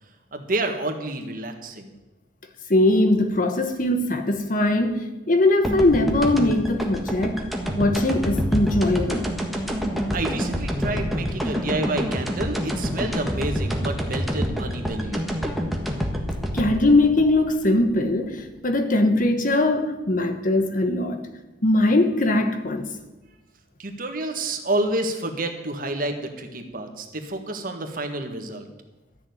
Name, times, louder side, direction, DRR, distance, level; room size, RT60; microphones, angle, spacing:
voice 1, 0.3-1.9 10.1-15.3 23.8-28.7, right 2 dB, 50° right, 1.7 m, -29 dB
voice 2, 2.7-7.4 7.7-9.3 16.5-21.2 21.6-22.9, left 2 dB, 50° left, 1.3 m, -21 dB
sound 1, 5.6-18.4, equal, ahead, 1.6 m, -27 dB
13.0 x 7.1 x 9.5 m
head